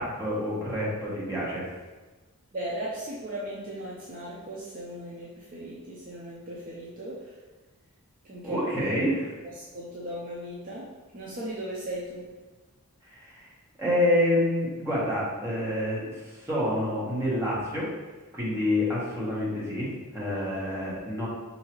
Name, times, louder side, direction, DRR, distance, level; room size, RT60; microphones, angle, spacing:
voice 1, 0.0-1.7 8.4-9.3 13.1-13.5 13.8-17.8 18.3-21.3, left 1 dB, 10° right, -7 dB, 1.1 m, -28 dB
voice 2, 2.5-7.4 8.2-8.6 9.5-10.9 11.1-12.3, right 1 dB, 40° right, -6 dB, 0.5 m, -37 dB
4.6 x 2.6 x 3.0 m, 1.2 s
head